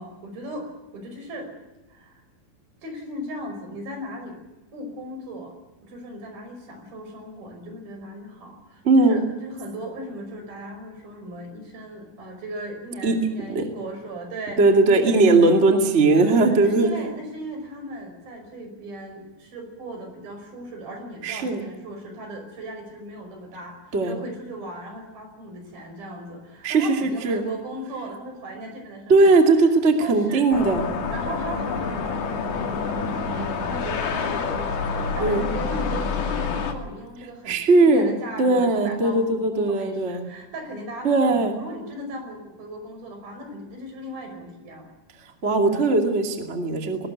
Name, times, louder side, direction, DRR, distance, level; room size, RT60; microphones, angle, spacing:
voice 1, 0.0-1.5 1.9-2.2 2.8-4.4 4.7-5.6 5.8-14.6 14.9-29.3 30.0-30.8 31.1-37.6 37.8-44.9 45.7-45.9, right 1 dB, 70° right, 5 dB, 7.1 m, -37 dB
voice 2, 8.8-9.2 13.0-13.2 13.5-13.7 14.6-16.9 21.2-21.6 23.9-24.1 26.6-27.4 29.1-30.8 35.2-35.4 37.5-38.1 38.4-40.2 41.0-41.6 45.4-47.1, right 3 dB, 20° right, 3 dB, 2.1 m, -19 dB
sound 1, 30.5-36.7, left 4 dB, 80° left, 4.4 m, -27 dB
20.5 x 19.5 x 9.2 m, 1.1 s
omnidirectional pair, 4.4 m